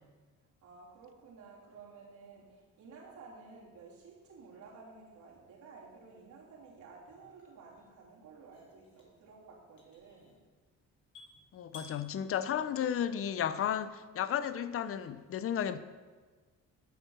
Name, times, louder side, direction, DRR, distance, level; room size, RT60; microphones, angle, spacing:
voice 1, 0.6-10.4, right 4 dB, 80° right, 3.3 m, -53 dB
sound 1, 6.1-13.7, left 3 dB, 80° left, 2.9 m, -59 dB
voice 2, 11.5-15.8, left 9 dB, 50° left, 0.6 m, -33 dB
12.0 x 4.6 x 6.6 m
cardioid pair, 90°, 30 cm